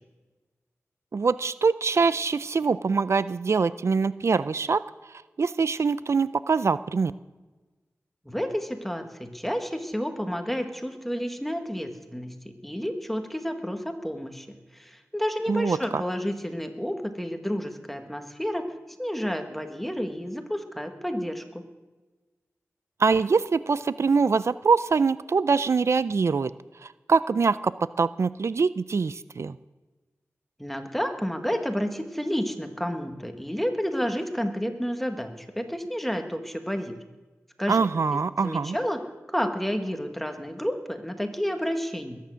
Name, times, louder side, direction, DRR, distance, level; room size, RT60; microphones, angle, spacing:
voice 1, 1.1-4.8 5.4-7.1 15.5-16.0 23.0-26.5 26.8-27.7 28.0-29.6 37.7-38.8, right 5 dB, 60° right, 16 dB, 0.4 m, -24 dB
voice 2, 8.2-18.6 19.0-21.6 30.6-37.0 37.6-37.9 38.1-42.2, equal, 5° left, 5 dB, 1.6 m, -30 dB
21.5 x 9.4 x 6.3 m, 1.2 s
wide cardioid pair, 65°, 5 cm